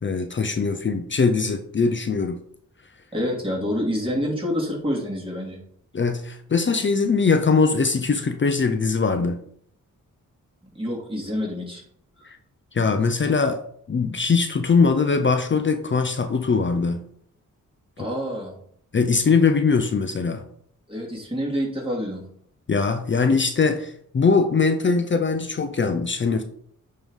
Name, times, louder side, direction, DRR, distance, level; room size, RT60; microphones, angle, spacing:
voice 1, 0.0-2.4 5.9-9.4 12.3-12.4 12.7-13.6 13.9-17.1 18.9-20.4 22.7-26.4, left 4 dB, 35° left, 7 dB, 0.6 m, -21 dB
voice 2, 3.1-5.6 10.6-11.8 18.0-18.6 20.9-22.2, equal, 15° right, -3 dB, 2.5 m, -27 dB
8.9 x 3.2 x 3.7 m, 0.64 s
cardioid pair, 65°, 33 cm